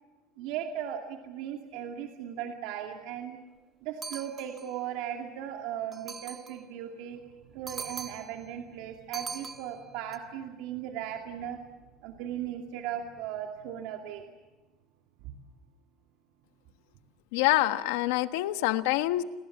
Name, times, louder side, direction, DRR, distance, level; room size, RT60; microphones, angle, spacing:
voice 1, 0.4-3.4 3.8-11.6 12.0-14.3 15.2-15.3, right 10 dB, 65° right, 3 dB, 2.5 m, -37 dB
sound 1, 4.0-4.8 5.9-6.7 7.7-8.5 9.1-10.2, right 5 dB, 20° right, 1.4 m, -41 dB
voice 2, 17.3-19.2, left 16 dB, 90° left, 10 dB, 1.3 m, -26 dB
29.5 x 20.5 x 7.2 m, 1.2 s
cardioid pair, 170°, 0 cm